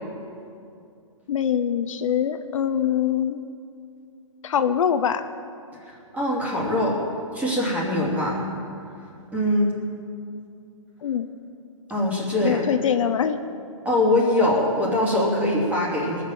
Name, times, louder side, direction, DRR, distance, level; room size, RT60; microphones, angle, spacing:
voice 1, 1.3-3.4 4.4-5.3 11.0-11.3 12.4-13.4, left 8 dB, 75° left, 10 dB, 0.7 m, -23 dB
voice 2, 5.8-7.0 7.3-8.5 9.3-9.7 11.9-12.6 13.8-16.2, left 1 dB, 10° right, -5 dB, 3.1 m, -22 dB
20.0 x 6.7 x 7.6 m, 2.5 s
hypercardioid pair, 145°, 17 cm